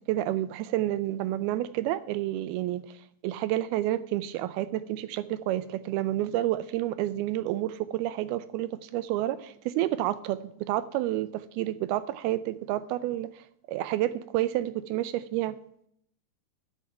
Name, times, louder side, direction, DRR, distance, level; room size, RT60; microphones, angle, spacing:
voice 1, 0.0-3.0 3.2-15.6, right 14 dB, 80° right, 15 dB, 2.3 m, -30 dB
9.7 x 7.6 x 9.2 m, 0.71 s
omnidirectional pair, 4.8 m